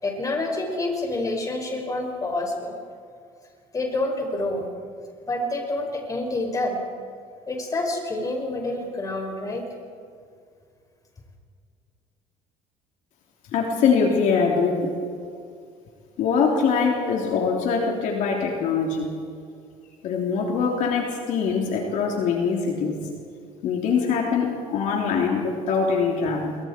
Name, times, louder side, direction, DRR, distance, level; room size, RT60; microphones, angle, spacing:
voice 1, 0.0-2.8 3.7-4.7 5.3-6.8 7.5-9.7, left 2 dB, 25° left, 2 dB, 5.3 m, -27 dB
voice 2, 13.5-14.9 16.2-19.1 20.0-23.0 23.6-26.6, left 5 dB, 65° left, 0 dB, 3.3 m, -23 dB
27.0 x 23.0 x 4.5 m, 2.3 s
cardioid pair, 110°, 14 cm